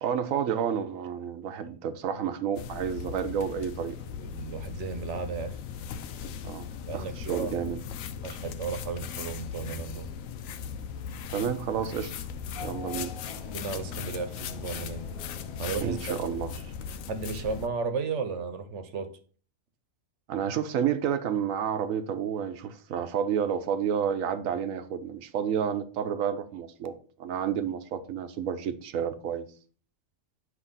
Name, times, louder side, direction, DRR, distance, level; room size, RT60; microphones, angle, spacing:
voice 1, 0.0-4.1 6.4-7.8 11.3-12.1 12.6-13.1 15.8-16.5 20.3-26.9 27.2-29.5, right 8 dB, 80° right, 1.1 m, -30 dB
sound 1, 2.6-17.7, left 7 dB, 85° left, 1.0 m, -38 dB
voice 2, 4.1-5.6 6.9-7.5 8.2-10.1 12.9-13.1 13.5-15.0 15.6-16.4 17.1-19.1, right 5 dB, 65° right, 1.2 m, -34 dB
Race car auto racing / Accelerating revving vroom, 12.5-17.3, left 4 dB, 30° left, 0.6 m, -46 dB
8.4 x 2.9 x 5.5 m
omnidirectional pair, 1.4 m